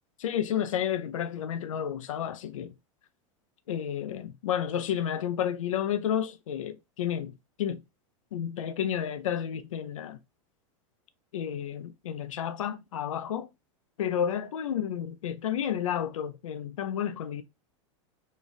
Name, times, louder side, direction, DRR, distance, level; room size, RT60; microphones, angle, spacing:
voice 1, 0.2-2.7 3.7-7.8 8.3-10.2 11.3-13.5 14.0-17.4, left 9 dB, 90° left, 0.6 m, -31 dB
5.2 x 2.4 x 4.0 m
hypercardioid pair, 115°, 16 cm